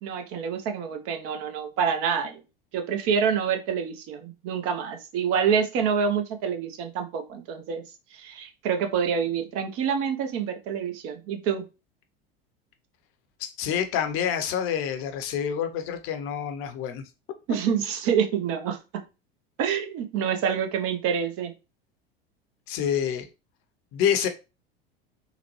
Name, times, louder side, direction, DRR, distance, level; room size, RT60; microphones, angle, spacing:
voice 1, 0.0-2.4 2.7-7.8 8.1-11.7 17.5-18.8 19.6-21.5, right 7 dB, 50° right, 0.7 m, -27 dB
voice 2, 13.4-17.0 22.7-23.3 23.9-24.3, left 9 dB, 45° left, 0.7 m, -27 dB
3.9 x 2.1 x 3.0 m
hypercardioid pair, 80°, 30 cm